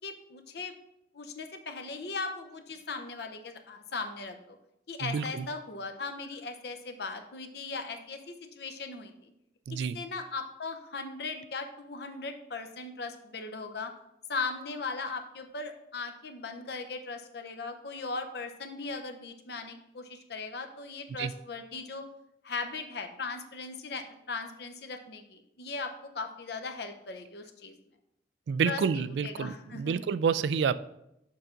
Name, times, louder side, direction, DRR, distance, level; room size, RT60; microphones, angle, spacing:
voice 1, 0.0-0.7 1.1-4.6 4.9-9.3 9.7-13.9 14.3-22.0 22.4-27.7 28.6-30.0, left 4 dB, 65° left, 5 dB, 0.8 m, -38 dB
voice 2, 5.0-5.4 9.7-10.0 21.2-21.3 28.5-30.7, right 6 dB, 75° right, 15 dB, 0.3 m, -29 dB
6.7 x 5.7 x 3.8 m, 0.83 s
head